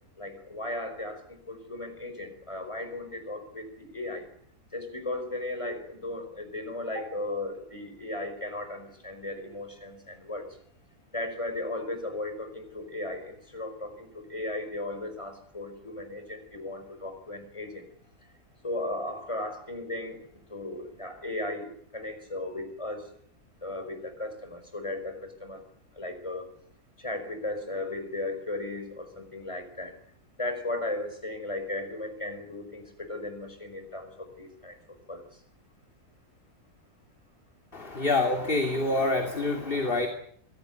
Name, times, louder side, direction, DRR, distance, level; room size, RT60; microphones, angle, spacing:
voice 1, 0.2-4.3 4.7-10.5 11.1-17.9 18.6-20.2 20.5-21.7 21.9-23.0 23.6-25.6 26.0-26.5 27.0-30.0 30.4-34.8 35.1-35.2, left 2 dB, 20° left, 7 dB, 5.2 m, -36 dB
voice 2, 37.7-40.1, left 2 dB, 35° left, 4 dB, 3.0 m, -26 dB
25.0 x 17.5 x 9.3 m, 0.63 s
omnidirectional pair, 1.6 m